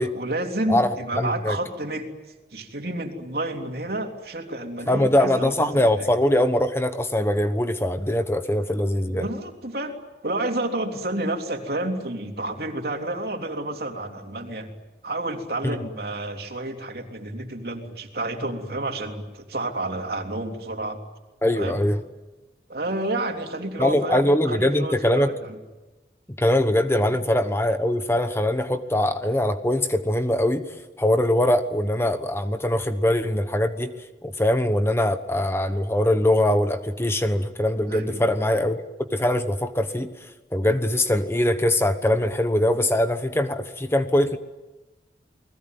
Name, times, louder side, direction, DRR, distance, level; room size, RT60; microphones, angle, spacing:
voice 1, 0.0-2.1 2.5-6.1 9.1-10.0 10.2-14.7 15.0-21.0 21.5-21.8 22.7-25.6 37.9-38.3, right 1 dB, 60° right, 4 dB, 3.3 m, -30 dB
voice 2, 0.7-1.6 4.9-9.3 15.6-15.8 21.4-22.0 23.8-25.3 26.4-30.7 31.0-33.9 34.2-38.8 39.1-40.1 40.5-44.4, left 1 dB, 15° left, 9 dB, 1.1 m, -22 dB
29.5 x 20.5 x 9.4 m, 1.1 s
head